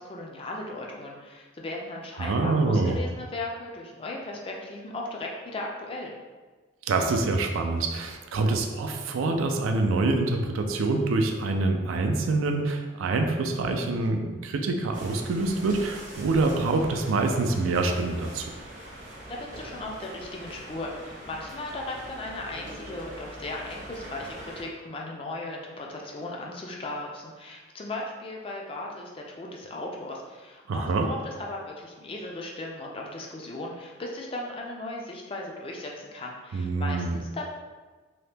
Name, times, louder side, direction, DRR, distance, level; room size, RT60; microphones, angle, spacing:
voice 1, 0.0-6.1 19.3-37.5, left 2 dB, 25° left, -1 dB, 0.3 m, -37 dB
voice 2, 2.2-3.0 6.8-18.5 30.7-31.1 36.5-37.2, right 3 dB, 85° right, 4 dB, 0.4 m, -26 dB
sound 1, 14.9-24.6, right 1 dB, 40° right, 0.6 m, -43 dB
2.8 x 2.1 x 3.3 m, 1.3 s
head